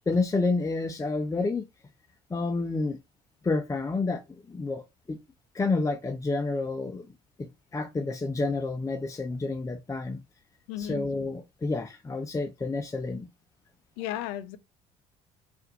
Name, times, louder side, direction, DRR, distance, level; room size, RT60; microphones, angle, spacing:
voice 1, 0.1-1.7 2.3-3.0 3.4-5.2 5.5-7.1 7.4-10.2 10.8-13.3, left 3 dB, 20° left, 0.7 m, -29 dB
voice 2, 10.7-11.1 14.0-14.6, left 12 dB, 80° left, 0.6 m, -34 dB
4.2 x 2.6 x 3.9 m
hypercardioid pair, 70°, 17 cm